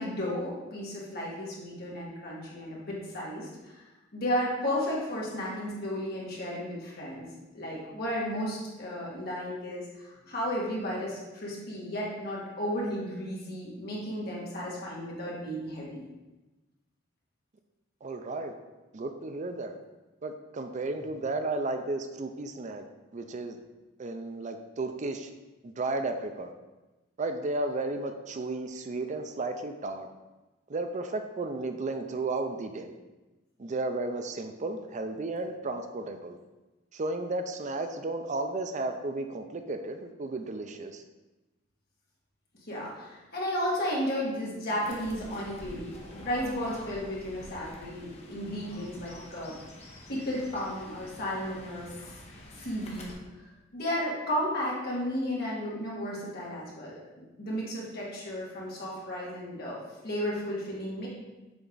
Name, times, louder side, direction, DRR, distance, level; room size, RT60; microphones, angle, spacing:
voice 1, 0.0-3.9 4.1-7.3 7.5-16.0 42.7-49.6 50.1-52.1 52.6-53.5 53.7-59.8 60.0-61.1, equal, 55° left, -5 dB, 2.0 m, -33 dB
voice 2, 18.0-18.5 18.9-19.8 20.2-22.8 23.1-23.6 24.0-25.3 25.6-26.5 27.2-30.1 30.7-33.0 33.6-36.4 36.9-41.0, right 2 dB, 40° right, 7 dB, 0.4 m, -33 dB
Fowl / Bird, 44.8-53.1, left 1 dB, 35° left, 1.1 m, -47 dB
7.0 x 4.5 x 3.9 m, 1.1 s
head